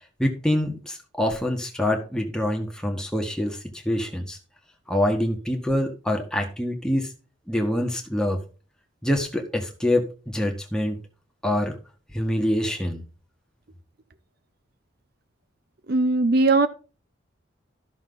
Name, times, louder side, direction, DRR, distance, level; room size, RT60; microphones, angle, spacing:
voice 1, 0.2-3.6 3.8-4.4 4.9-7.1 7.5-8.4 9.0-11.0 11.4-11.7 12.1-13.0, left 1 dB, 5° left, 1 dB, 1.6 m, -25 dB
voice 2, 15.9-16.7, right 3 dB, 55° right, 12 dB, 0.6 m, -19 dB
13.0 x 6.4 x 3.9 m, 0.35 s
head